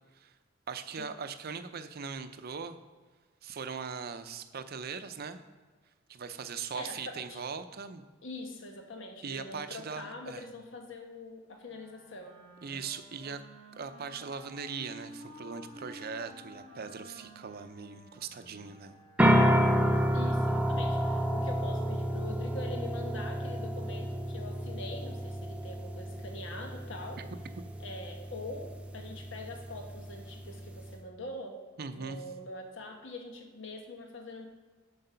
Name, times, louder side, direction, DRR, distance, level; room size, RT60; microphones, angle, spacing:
voice 1, 0.7-2.8 3.4-5.4 6.1-8.0 9.2-10.4 12.6-13.4 13.8-19.0 31.8-32.2, right 5 dB, 50° right, 10 dB, 0.6 m, -40 dB
voice 2, 6.5-7.4 8.2-12.4 20.1-27.2 27.8-31.6 31.9-34.5, left 2 dB, 70° left, 3 dB, 1.2 m, -44 dB
Wind instrument woodwind instrument, 11.7-19.7, equal, 35° left, 2.4 m, -52 dB
sound 1, 19.2-30.9, equal, 5° right, 0.5 m, -30 dB
7.7 x 5.4 x 5.6 m, 1.4 s
head